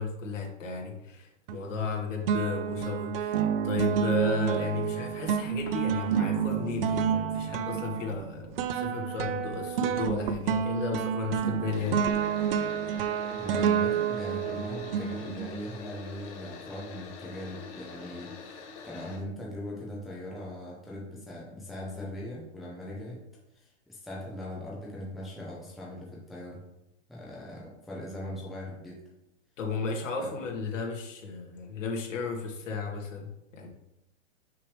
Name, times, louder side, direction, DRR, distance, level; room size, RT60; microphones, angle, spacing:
voice 1, 0.0-12.3 29.6-33.7, left 4 dB, 85° left, 0 dB, 1.9 m, -34 dB
sound 1, 1.5-1.9 2.3-15.7, right 8 dB, 50° right, 0.5 m, -29 dB
sound 2, 11.7-19.2, left 4 dB, 35° left, 1.5 m, -45 dB
voice 2, 13.4-23.2 23.5-26.7 27.1-29.0 30.2-30.3, left 1 dB, ahead, -5 dB, 0.5 m, -40 dB
5.8 x 4.9 x 3.3 m, 0.87 s
hypercardioid pair, 150°, 37 cm